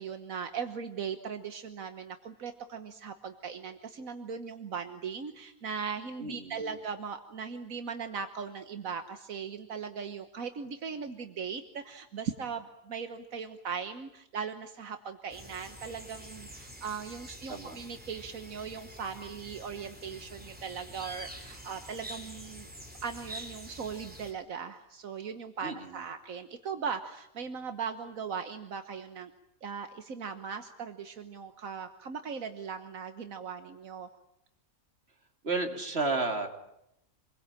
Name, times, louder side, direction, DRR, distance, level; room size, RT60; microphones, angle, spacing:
voice 1, 0.0-22.7 23.0-29.3 29.6-34.1, right 6 dB, 80° right, 8 dB, 1.7 m, -39 dB
voice 2, 6.2-6.8 17.5-17.8 25.6-26.0 35.4-36.5, right 3 dB, 50° right, 4 dB, 3.0 m, -32 dB
sound 1, 15.3-24.3, equal, 5° right, 4.2 m, -47 dB
27.0 x 22.0 x 9.0 m, 0.81 s
omnidirectional pair, 1.4 m